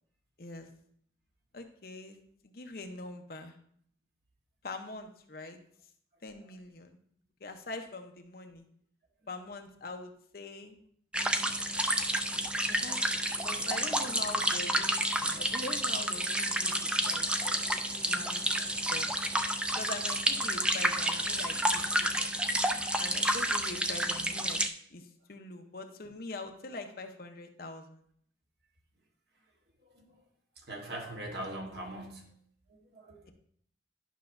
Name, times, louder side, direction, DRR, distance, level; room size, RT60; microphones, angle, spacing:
voice 1, 1.5-2.2 2.4-3.6 4.6-5.6 6.2-7.0 7.4-8.7 9.3-10.8 12.7-16.8 17.1-17.8 18.1-19.1 19.8-22.3 23.0-24.6 24.9-28.1, left 2 dB, 55° left, 0.8 m, -43 dB
sound 1, 11.1-24.7, right 1 dB, 5° right, 0.3 m, -30 dB
voice 2, 29.8-30.2 30.6-32.3 32.7-33.3, right 1 dB, 65° right, 1.4 m, -42 dB
11.0 x 5.8 x 2.6 m
head